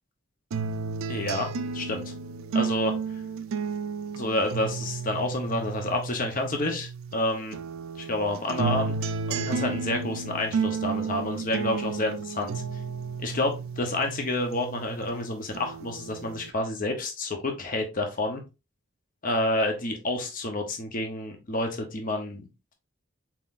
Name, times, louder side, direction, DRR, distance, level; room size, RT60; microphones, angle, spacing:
sound 1, 0.5-7.2 7.5-15.2 15.5-16.5, right 5 dB, 85° right, 0.4 m, -32 dB
voice 1, 1.1-2.1 2.5-2.9 4.1-7.6 8.0-12.6 13.2-18.4 19.2-22.5, left 2 dB, 45° left, 4 dB, 0.8 m, -29 dB
4.4 x 3.7 x 2.4 m, 0.27 s
head